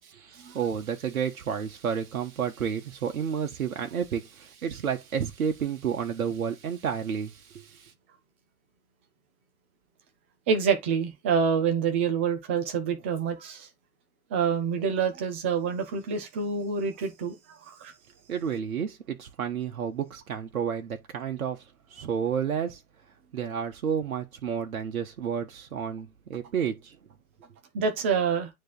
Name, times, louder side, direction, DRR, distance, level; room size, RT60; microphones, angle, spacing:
voice 1, 0.0-7.9 18.3-21.6 21.9-22.8 23.3-27.0, right 7 dB, 65° right, 1.4 m, -31 dB
voice 2, 10.5-13.7 14.3-17.4 17.6-17.9 27.7-28.5, right 6 dB, 10° right, 0.3 m, -27 dB
9.3 x 3.4 x 3.8 m
figure-of-eight pair, 110°, 44 cm